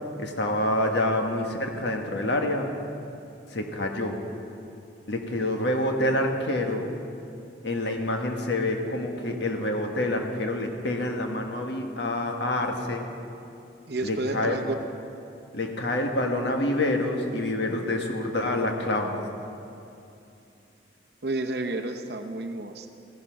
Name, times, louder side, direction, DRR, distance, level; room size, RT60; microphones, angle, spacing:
voice 1, 0.2-2.7 3.5-4.2 5.1-6.9 7.6-13.1 14.0-14.6 15.5-19.2, left 1 dB, 65° left, 3 dB, 1.4 m, -27 dB
voice 2, 13.9-14.7 21.2-22.9, right 2 dB, 55° right, 5 dB, 0.7 m, -30 dB
15.5 x 10.5 x 6.3 m, 2.6 s
head